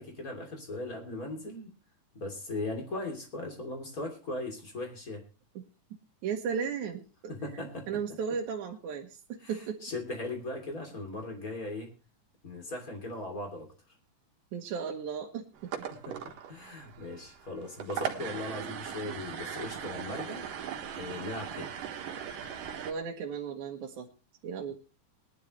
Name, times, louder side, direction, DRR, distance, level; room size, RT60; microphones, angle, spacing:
voice 1, 0.0-1.7 2.1-5.2 7.3-8.0 9.4-11.9 12.4-13.7 16.1-16.2 16.5-20.4 20.9-21.7, left 2 dB, 25° left, 3 dB, 3.2 m, -38 dB
voice 2, 6.2-7.3 7.9-9.8 14.5-15.7 20.1-20.2 22.8-24.1 24.4-24.7, right 6 dB, 70° right, 0 dB, 2.6 m, -35 dB
sound 1, 15.6-22.9, right 8 dB, 90° right, 3.1 m, -39 dB
21.0 x 10.5 x 3.2 m, 0.33 s
omnidirectional pair, 3.7 m